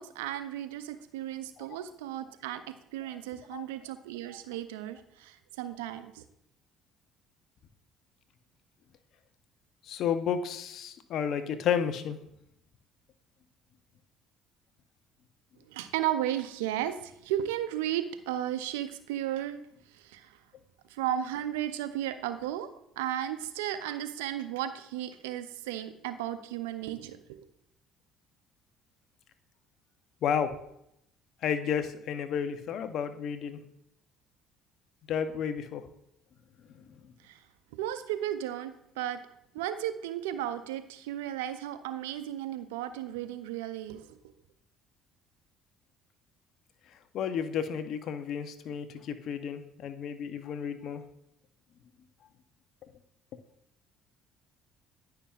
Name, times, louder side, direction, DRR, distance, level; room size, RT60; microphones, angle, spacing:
voice 1, 0.0-6.2 15.7-19.6 19.9-20.4 20.9-27.2 37.2-37.4 37.7-39.2 39.5-44.2, right 11 dB, 85° right, 11 dB, 0.4 m, -34 dB
voice 2, 9.8-12.2 30.2-30.5 31.4-33.6 35.1-35.8 47.1-51.0, left 8 dB, 65° left, 10 dB, 0.7 m, -32 dB
9.9 x 5.7 x 2.4 m, 0.76 s
hypercardioid pair, 65°, 0 cm